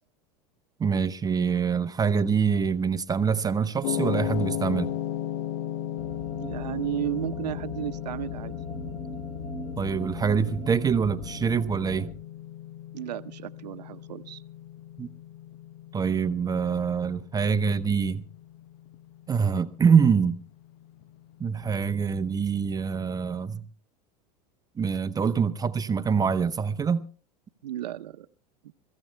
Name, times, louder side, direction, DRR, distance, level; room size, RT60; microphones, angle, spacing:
voice 1, 0.8-4.9 9.8-12.1 15.0-15.1 15.9-18.2 19.3-20.4 21.4-23.6 24.8-27.1, right 6 dB, 20° right, 0.7 m, -25 dB
sound 1, 3.8-22.1, left 12 dB, 60° left, 0.8 m, -36 dB
sound 2, 6.0-12.1, left 1 dB, 40° left, 3.5 m, -40 dB
voice 2, 6.4-8.5 12.9-14.4 27.6-28.3, right 12 dB, 85° right, 0.7 m, -33 dB
28.5 x 14.5 x 2.2 m
hypercardioid pair, 105°, 21 cm